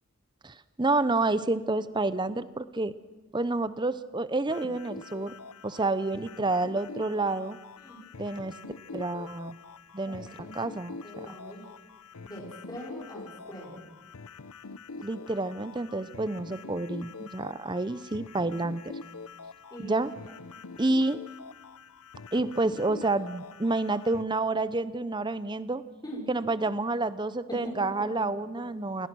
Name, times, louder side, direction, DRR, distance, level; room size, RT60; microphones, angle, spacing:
voice 1, 0.4-2.9 3.3-5.3 5.6-7.6 8.2-8.5 8.9-9.6 9.9-10.3 10.5-11.3 15.0-18.8 19.8-20.1 20.8-21.2 22.3-25.8 26.3-29.1, right 2 dB, 20° right, 14 dB, 0.6 m, -29 dB
sound 1, 4.5-24.3, left 4 dB, 85° left, 0.8 m, -45 dB
voice 2, 10.1-10.5 11.0-11.6 12.2-13.8 19.7-19.9 20.2-20.3 26.0-26.2 27.5-27.6 28.0-28.3 28.5-28.6, equal, 15° left, -4 dB, 5.7 m, -42 dB
28.5 x 19.5 x 6.2 m, 1.2 s
head